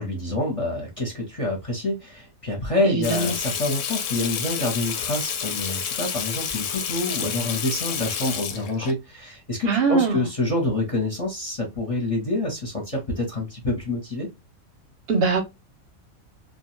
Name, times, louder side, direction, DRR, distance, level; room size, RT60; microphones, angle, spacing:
voice 1, 0.0-14.3, left 2 dB, 30° left, 0.7 m, -27 dB
voice 2, 2.8-3.3 9.6-10.2 15.1-15.4, right 4 dB, 55° right, 0.7 m, -21 dB
Water tap faucet / Sink (filling or washing), 3.0-8.9, left 8 dB, 70° left, 0.9 m, -29 dB
2.4 x 2.2 x 3.0 m
omnidirectional pair, 1.5 m